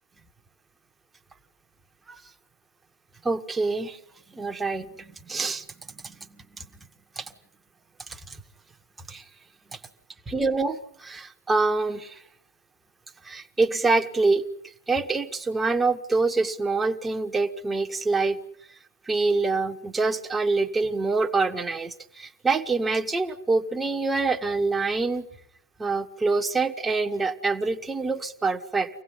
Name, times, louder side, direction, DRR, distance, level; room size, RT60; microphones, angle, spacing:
voice 1, 3.2-4.0 4.3-5.6 6.0-6.7 7.2-7.3 8.1-8.4 9.1-9.2 9.7-9.8 10.3-12.2 13.2-14.4 14.9-18.4 19.1-25.3 25.8-28.9, right 3 dB, 10° right, 7 dB, 1.6 m, -26 dB
25.5 x 17.5 x 9.9 m, 0.69 s
figure-of-eight pair, 100°, 0 cm